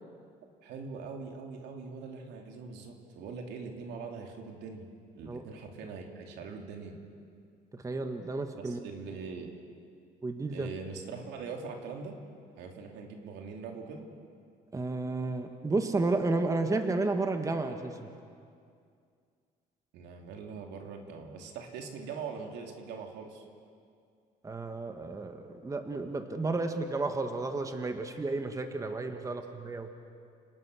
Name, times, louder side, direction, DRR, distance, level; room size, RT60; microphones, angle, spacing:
voice 1, 0.6-4.9 5.1-7.0 8.6-9.5 10.5-12.2 12.6-14.1 19.9-23.5 29.2-29.3, right 5 dB, 85° right, 2 dB, 3.0 m, -42 dB
voice 2, 7.7-8.8 10.2-10.7 14.7-18.1 24.4-29.9, right 3 dB, 20° right, 6 dB, 1.6 m, -32 dB
29.5 x 19.0 x 6.4 m, 2.3 s
cardioid pair, 110°, 17 cm